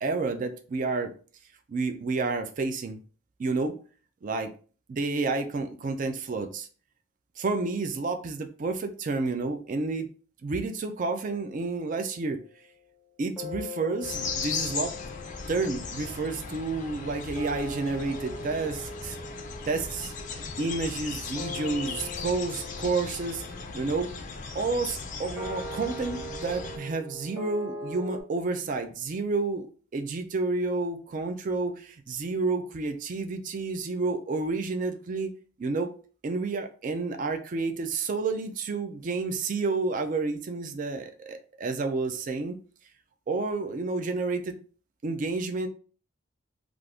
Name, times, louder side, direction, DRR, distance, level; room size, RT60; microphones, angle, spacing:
voice 1, 0.0-1.1 1.7-3.0 3.4-3.8 4.2-4.5 4.9-6.7 7.4-10.1 10.4-12.4 13.2-14.9 15.5-19.2 19.7-20.1 20.6-23.4 23.7-24.1 24.5-35.3 35.6-35.9 36.2-42.6 43.3-44.6 45.0-45.7, right 3 dB, 40° right, 6 dB, 0.3 m, -30 dB
sound 1, 11.2-12.6 13.4-28.2, left 2 dB, 5° right, 1.0 m, -42 dB
sound 2, 14.0-26.8, left 4 dB, 35° left, 0.4 m, -37 dB
2.5 x 2.4 x 3.4 m, 0.40 s
head